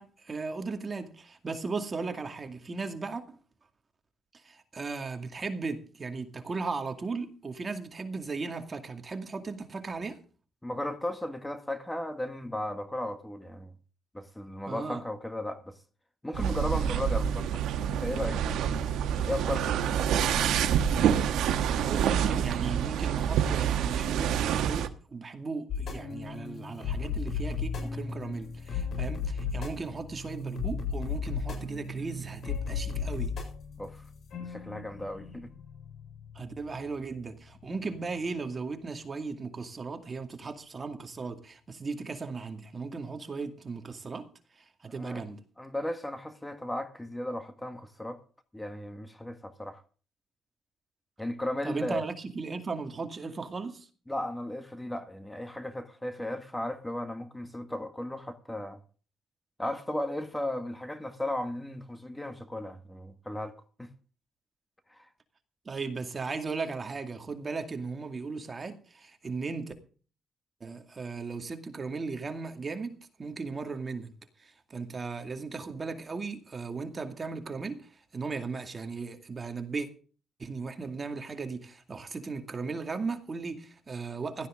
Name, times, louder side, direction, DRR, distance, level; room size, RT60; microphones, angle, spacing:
voice 1, 0.0-3.4 4.4-10.2 14.7-15.0 21.8-33.3 36.4-44.3 44.8-45.4 51.6-53.9 65.7-69.7 70.6-74.1 74.7-77.9 78.1-79.9 80.4-84.5, right 4 dB, 35° right, 2.2 m, -36 dB
voice 2, 10.6-13.7 14.1-15.8 16.2-18.7 19.2-20.8 33.8-34.0 34.4-35.5 44.9-45.2 45.6-48.2 48.5-49.8 51.2-52.0 54.1-58.8 59.6-63.9 64.9-65.1, left 1 dB, 10° left, 1.7 m, -36 dB
sound 1, 16.3-24.9, right 9 dB, 80° right, 1.2 m, -27 dB
sound 2, 25.7-38.3, left 5 dB, 60° left, 7.5 m, -36 dB
17.0 x 13.0 x 3.8 m
cardioid pair, 90°, 0 cm